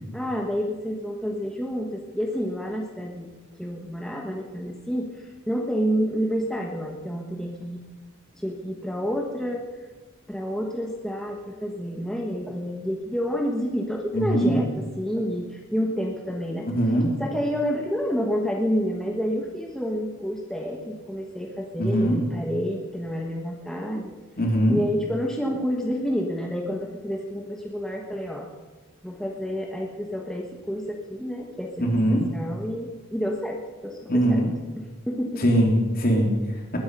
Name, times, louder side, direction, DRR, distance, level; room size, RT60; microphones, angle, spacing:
voice 1, 0.1-3.3 3.6-7.8 8.3-9.6 10.3-14.7 15.0-16.7 17.2-24.1 24.7-28.5 29.0-32.0 32.3-34.4 35.1-35.4, equal, 5° left, 0 dB, 1.1 m, -29 dB
voice 2, 14.1-14.6 16.6-17.1 21.8-22.2 24.4-24.8 31.8-32.2 34.1-34.5 35.4-36.8, equal, 45° left, 1 dB, 3.0 m, -21 dB
20.0 x 9.8 x 5.4 m, 1.3 s
head